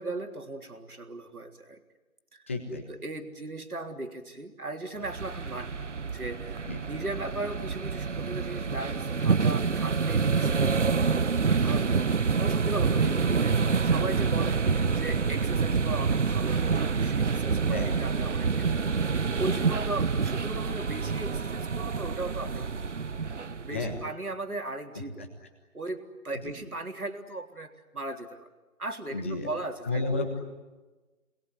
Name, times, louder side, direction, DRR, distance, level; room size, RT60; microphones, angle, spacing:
voice 1, 0.0-1.8 2.3-2.4 2.9-5.8 6.1-10.8 11.6-18.7 19.0-22.7 23.6-25.3 25.7-28.5 28.8-30.0, right 2 dB, 85° right, 4 dB, 3.7 m, -37 dB
voice 2, 2.5-2.9 6.6-6.8 12.9-13.1 17.7-17.9 23.7-24.0 25.2-25.3 26.4-26.5 29.1-29.5 29.8-30.4, left 2 dB, 10° left, 3 dB, 1.2 m, -32 dB
sound 1, 5.0-24.1, right 5 dB, 55° right, 1.0 m, -27 dB
28.5 x 21.5 x 9.8 m, 1.2 s
figure-of-eight pair, 165°, 43 cm